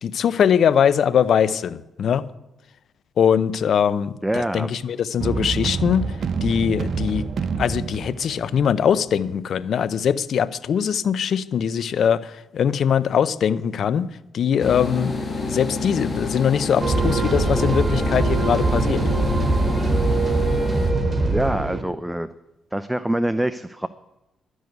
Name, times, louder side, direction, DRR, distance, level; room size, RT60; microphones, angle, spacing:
voice 1, 0.0-2.3 3.2-6.1 6.4-7.3 7.6-14.1 14.3-15.2 15.4-19.0, left 8 dB, 65° left, 17 dB, 0.6 m, -21 dB
voice 2, 4.2-4.7 21.2-22.3 22.7-23.9, right 1 dB, 5° right, 12 dB, 0.6 m, -25 dB
sound 1, 5.2-9.2, right 5 dB, 60° right, 0.7 m, -28 dB
sound 2, 14.6-20.9, left 3 dB, 40° left, 1.7 m, -28 dB
sound 3, 16.8-21.8, right 2 dB, 35° right, 1.9 m, -22 dB
12.0 x 6.4 x 9.4 m, 0.94 s
supercardioid pair, 50°, 0 cm